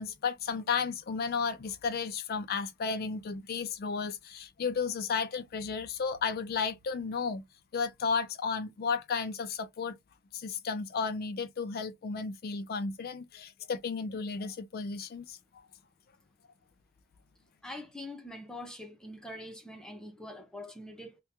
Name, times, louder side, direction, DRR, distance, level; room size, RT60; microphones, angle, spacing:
voice 1, 0.0-7.4 7.7-9.9 10.3-15.4, left 5 dB, 50° left, 0.4 m, -33 dB
voice 2, 17.6-21.2, left 1 dB, 5° left, 0.6 m, -44 dB
2.9 x 2.2 x 3.3 m
head